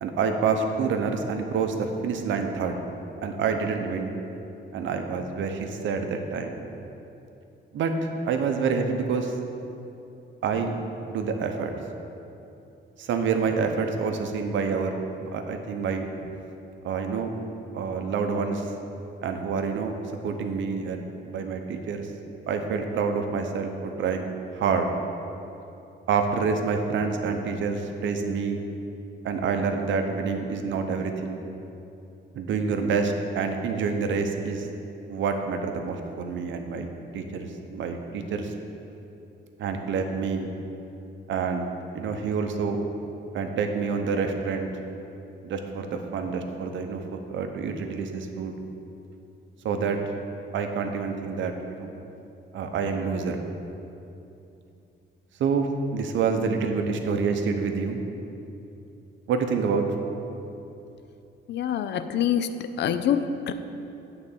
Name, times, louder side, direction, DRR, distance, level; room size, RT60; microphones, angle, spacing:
voice 1, 0.0-2.8 3.2-4.1 4.7-6.6 7.7-7.9 8.3-9.3 10.4-10.7 11.1-11.7 13.0-16.1 16.8-17.3 17.7-18.7 19.2-19.9 20.2-22.1 22.5-24.3 24.5-24.9 26.1-28.6 29.2-31.4 32.3-34.7 35.1-38.5 39.6-40.5 41.3-41.7 41.9-42.8 43.3-44.7 45.4-48.5 49.6-50.0 50.5-51.5 51.8-51.9 52.5-53.4 55.4-58.0 59.3-59.8, right 5 dB, 75° right, 5 dB, 0.8 m, -27 dB
voice 2, 61.5-62.5 62.8-63.5, left 9 dB, 60° left, 10 dB, 0.5 m, -25 dB
9.0 x 3.9 x 7.2 m, 2.8 s
cardioid pair, 145°, 20 cm